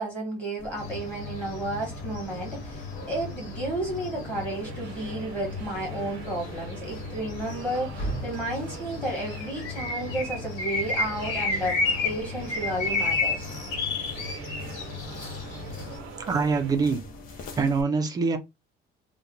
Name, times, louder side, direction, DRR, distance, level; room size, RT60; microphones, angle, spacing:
voice 1, 0.0-11.8 12.0-13.5, right 1 dB, 5° left, 1.3 m, -32 dB
sound 1, 0.6-17.8, left 3 dB, 45° left, 0.7 m, -45 dB
sound 2, 0.8-16.0, left 3 dB, 65° left, 1.5 m, -33 dB
sound 3, 4.6-16.7, right 11 dB, 85° right, 0.6 m, -46 dB
voice 2, 15.9-17.0 17.5-18.4, right 4 dB, 20° right, 0.4 m, -25 dB
2.8 x 2.2 x 3.8 m
cardioid pair, 180°, 21 cm